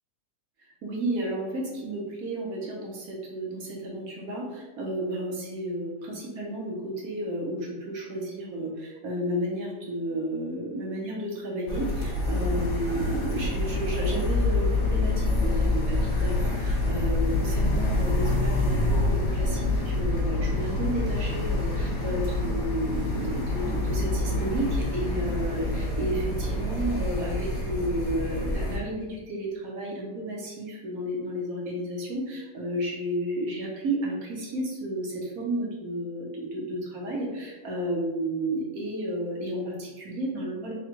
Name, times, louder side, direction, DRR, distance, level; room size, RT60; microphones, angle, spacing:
voice 1, 0.8-40.7, right 1 dB, 65° right, -2 dB, 1.4 m, -32 dB
sound 1, 11.7-28.8, left 2 dB, 50° left, 1.3 m, -26 dB
3.8 x 2.4 x 4.5 m, 1.2 s
omnidirectional pair, 1.7 m